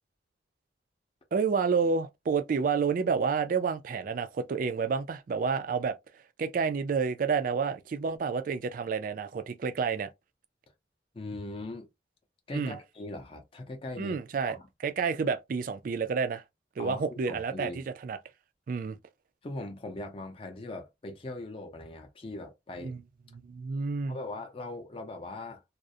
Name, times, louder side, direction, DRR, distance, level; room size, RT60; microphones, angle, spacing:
voice 1, 1.3-10.1 12.5-12.8 14.0-14.6 14.8-16.4 16.8-18.2 18.7-19.0 22.8-23.0 23.3-24.2, right 5 dB, 50° right, 0.3 m, -29 dB
voice 2, 11.1-11.9 12.5-14.7 16.8-17.8 19.4-22.9 24.1-25.6, left 2 dB, 30° left, 0.5 m, -40 dB
2.3 x 2.0 x 2.6 m
head